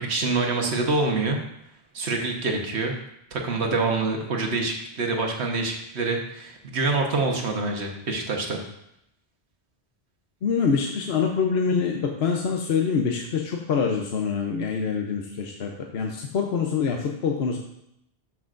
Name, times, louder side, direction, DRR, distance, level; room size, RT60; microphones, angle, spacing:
voice 1, 0.0-1.4 1.9-2.9 3.3-8.6, right 3 dB, 85° right, 2 dB, 1.4 m, -26 dB
voice 2, 10.4-17.6, left 6 dB, 75° left, 2 dB, 1.0 m, -25 dB
12.5 x 5.9 x 2.5 m, 0.79 s
omnidirectional pair, 1.1 m